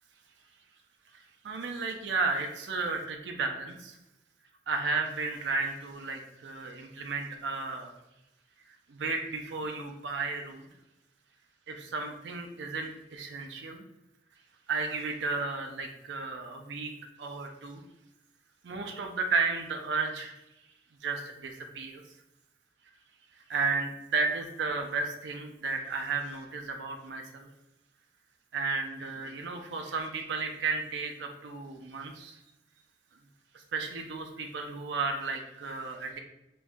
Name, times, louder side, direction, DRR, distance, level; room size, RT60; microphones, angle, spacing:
voice 1, 1.1-4.0 4.7-7.9 8.9-10.7 11.7-13.8 14.7-16.9 17.2-17.8 18.6-20.3 21.0-22.0 23.5-27.5 28.5-32.4 33.7-36.2, right 4 dB, 80° right, 3 dB, 0.5 m, -33 dB
3.0 x 2.6 x 3.5 m, 0.91 s
head